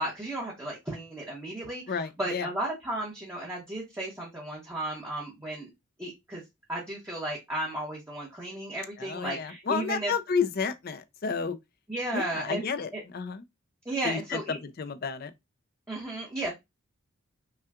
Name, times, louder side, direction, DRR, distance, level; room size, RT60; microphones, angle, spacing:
voice 1, 0.0-5.7 6.0-6.4 6.7-10.1 11.9-12.7 12.9-13.0 13.8-14.6 15.9-16.5, right 1 dB, 15° right, 1.0 m, -34 dB
voice 2, 1.9-2.5 9.0-11.6 12.1-13.4 14.0-15.3, left 5 dB, 50° left, 0.5 m, -31 dB
5.5 x 2.3 x 2.4 m
head